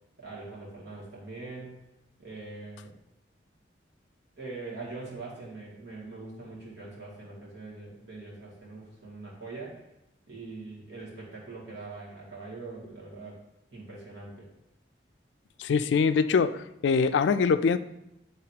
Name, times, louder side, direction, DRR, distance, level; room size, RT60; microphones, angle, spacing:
voice 1, 0.2-1.8 2.2-2.9 4.4-9.9 10.3-13.4 13.7-14.5, right 3 dB, 65° right, -5 dB, 2.3 m, -42 dB
voice 2, 15.6-17.8, left 5 dB, 75° left, 11 dB, 0.3 m, -23 dB
9.3 x 3.9 x 2.9 m, 0.88 s
head